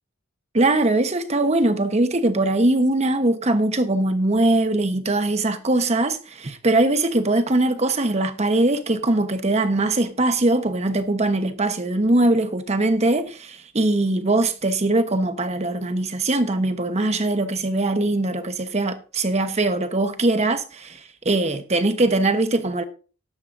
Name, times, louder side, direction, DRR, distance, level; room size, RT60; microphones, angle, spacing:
voice 1, 0.5-22.8, right 2 dB, 30° right, 0.9 m, -21 dB
18.5 x 7.2 x 2.5 m
head